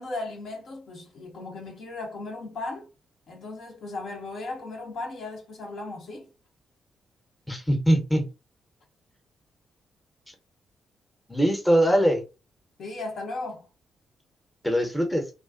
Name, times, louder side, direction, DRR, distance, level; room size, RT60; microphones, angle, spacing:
voice 1, 0.0-2.9 3.3-6.3 12.8-13.7, left 2 dB, 65° left, 0.9 m, -36 dB
voice 2, 7.5-8.3 11.3-12.2 14.6-15.3, equal, 5° left, 0.8 m, -22 dB
2.4 x 2.3 x 2.4 m
hypercardioid pair, 40°, 0 cm